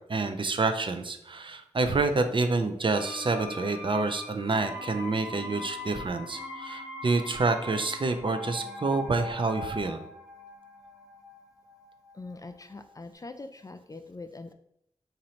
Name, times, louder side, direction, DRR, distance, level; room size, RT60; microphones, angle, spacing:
voice 1, 0.1-10.0, right 3 dB, 40° right, 7 dB, 0.4 m, -28 dB
sound 1, 2.9-12.6 12.9-13.0, left 2 dB, 10° right, 0.9 m, -41 dB
voice 2, 12.1-14.5, left 3 dB, 25° left, 8 dB, 0.3 m, -43 dB
2.8 x 2.6 x 4.2 m, 0.72 s
cardioid pair, 45°, 13 cm